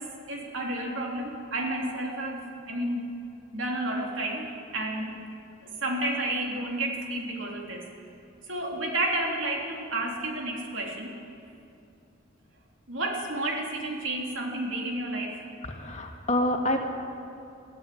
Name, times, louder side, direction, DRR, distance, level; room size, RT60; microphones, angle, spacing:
voice 1, 0.0-3.0 3.5-5.2 5.6-7.9 8.5-11.2 12.9-15.4, right 1 dB, 70° right, 0 dB, 3.5 m, -31 dB
voice 2, 15.6-16.8, left 1 dB, 35° left, 2 dB, 2.1 m, -27 dB
23.0 x 14.5 x 8.7 m, 2.7 s
head